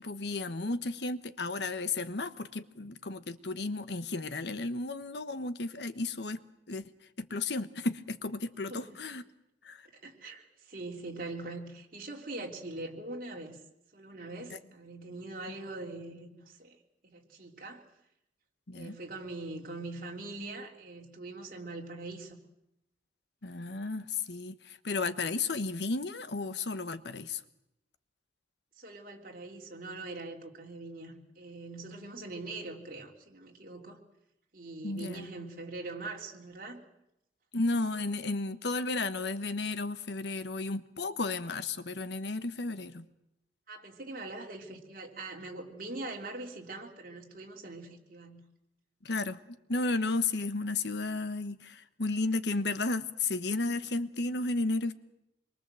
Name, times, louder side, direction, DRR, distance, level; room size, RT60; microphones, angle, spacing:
voice 1, 0.0-6.4 6.7-6.8 7.2-9.2 9.6-9.8 18.7-19.0 23.4-27.4 34.8-35.2 37.5-43.0 49.0-49.4 49.7-54.9, left 3 dB, 70° left, 12 dB, 1.2 m, -33 dB
voice 2, 9.9-13.6 13.9-16.8 17.0-17.8 18.7-22.4 28.8-34.0 34.5-36.8 43.7-48.4, right 2 dB, 50° right, 1 dB, 3.4 m, -42 dB
26.5 x 23.0 x 7.7 m, 0.86 s
head